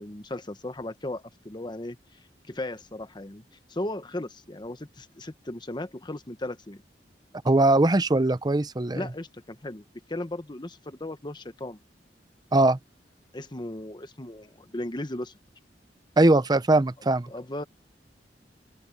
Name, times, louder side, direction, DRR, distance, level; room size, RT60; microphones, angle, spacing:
voice 1, 0.0-2.2 2.5-3.4 3.7-6.8 8.9-9.8 10.1-11.8 13.3-15.3 17.3-17.6, left 1 dB, 25° left, 1.2 m, -36 dB
voice 2, 7.4-9.1 12.5-12.8 16.2-17.3, right 2 dB, 25° right, 0.7 m, -21 dB
open air
head